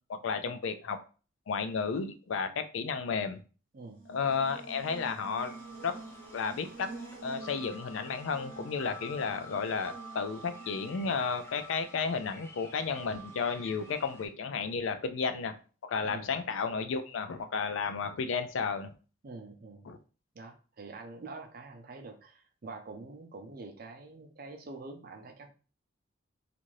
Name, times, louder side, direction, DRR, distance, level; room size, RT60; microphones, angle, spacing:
voice 1, 0.1-1.0 1.5-3.4 4.1-5.9 6.3-6.9 7.2-15.6 15.9-18.9 19.9-20.0, left 5 dB, 80° left, 9 dB, 0.4 m, -33 dB
Buzz, 3.8-12.0, right 3 dB, 80° right, 0.8 m, -48 dB
sound 1, 5.4-14.3, equal, 15° left, 0.4 m, -50 dB
voice 2, 19.2-19.9 20.3-25.5, right 3 dB, 45° right, 5 dB, 0.5 m, -46 dB
2.6 x 2.5 x 3.0 m, 0.36 s
head